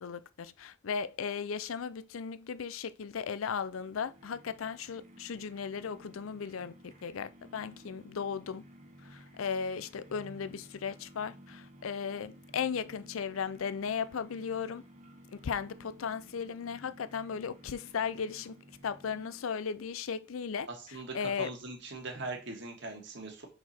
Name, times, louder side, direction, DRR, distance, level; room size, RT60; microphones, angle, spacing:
voice 1, 0.0-8.6 9.0-14.8 15.3-18.5 18.8-20.7 21.1-21.5, left 6 dB, 80° left, 0.5 m, -36 dB
sound 1, 3.2-19.8, equal, 35° right, 1.1 m, -55 dB
voice 2, 20.9-23.5, right 3 dB, 60° right, 1.9 m, -41 dB
5.9 x 4.8 x 4.3 m
head